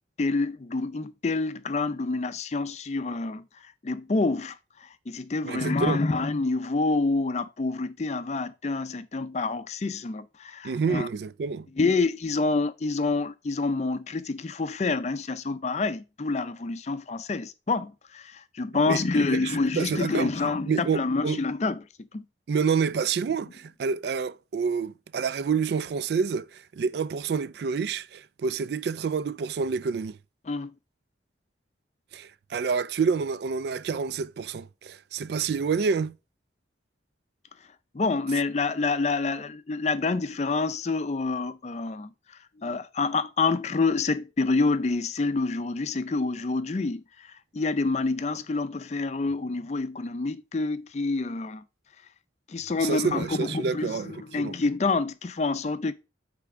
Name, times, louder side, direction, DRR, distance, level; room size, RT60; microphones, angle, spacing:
voice 1, 0.2-3.4 3.8-11.1 11.8-21.8 22.1-22.2 30.5-30.7 37.9-42.1 42.6-51.6 52.5-55.9, left 3 dB, 35° left, 0.4 m, -27 dB
voice 2, 5.4-6.0 10.6-11.7 18.9-20.3 20.7-21.4 22.5-30.2 32.1-36.2 52.8-54.6, right 5 dB, 60° right, 0.3 m, -28 dB
8.4 x 3.4 x 4.8 m
head